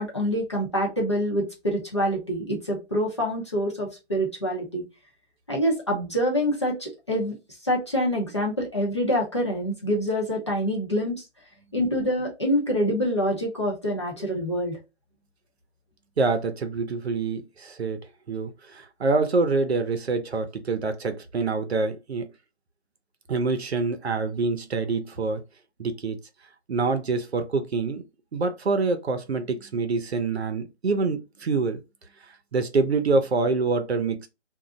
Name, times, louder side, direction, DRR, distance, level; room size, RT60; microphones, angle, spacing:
voice 1, 0.0-4.8 5.5-7.3 7.6-11.2 11.7-14.8, equal, 25° left, 0.6 m, -26 dB
voice 2, 16.2-18.0 18.3-22.3 23.3-25.4 25.8-26.2 26.7-28.0 28.3-31.8 32.5-34.3, right 3 dB, 65° right, 0.7 m, -26 dB
2.4 x 2.1 x 3.5 m
figure-of-eight pair, 165°, 34 cm